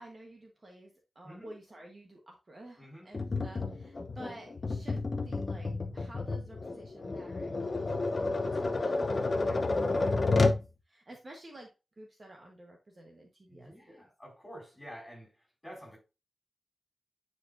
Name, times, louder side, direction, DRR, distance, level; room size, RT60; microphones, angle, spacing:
voice 1, 0.0-5.0 5.2-10.6 10.9-11.7 12.0-14.0, right 1 dB, 30° right, 1.1 m, -52 dB
voice 2, 2.8-3.1 9.4-9.5 13.5-16.0, equal, 10° left, 4.1 m, -49 dB
Tap, 3.1-10.7, left 3 dB, 35° left, 0.6 m, -30 dB
9.4 x 4.7 x 2.6 m
wide cardioid pair, 165°, 0 cm